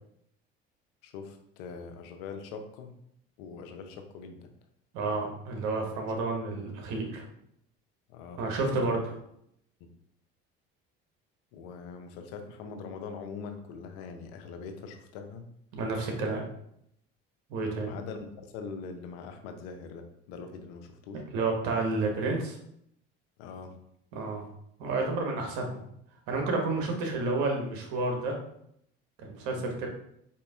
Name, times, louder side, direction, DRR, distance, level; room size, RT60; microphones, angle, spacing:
voice 1, 1.0-2.9 3.4-4.5 6.5-6.6 8.1-8.4 8.8-9.0 9.8-9.9 11.5-15.5 17.8-21.2 23.4-23.7 29.6-29.7, left 5 dB, 75° left, 6 dB, 0.7 m, -42 dB
voice 2, 4.9-7.2 8.4-9.0 15.7-16.4 17.5-17.9 21.3-22.6 24.1-24.5 24.8-25.9 26.3-28.4 29.2-29.9, right 3 dB, 70° right, 1 dB, 1.2 m, -30 dB
4.3 x 2.9 x 3.5 m, 0.73 s
hypercardioid pair, 75°, 29 cm